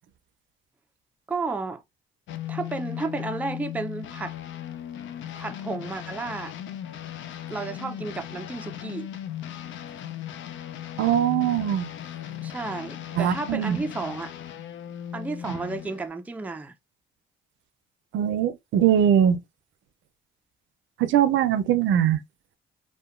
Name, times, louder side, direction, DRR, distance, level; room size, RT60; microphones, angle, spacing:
voice 1, 1.3-1.8 2.5-4.3 5.4-6.5 7.5-9.1 12.4-14.3 15.1-16.7, right 3 dB, 10° right, 0.4 m, -32 dB
sound 1, 2.3-16.1, left 11 dB, 75° left, 0.4 m, -37 dB
voice 2, 11.0-11.9 13.2-13.8 15.5-15.6 18.1-19.4 21.0-22.2, right 9 dB, 75° right, 0.4 m, -21 dB
2.8 x 2.1 x 2.4 m
cardioid pair, 90°, 20 cm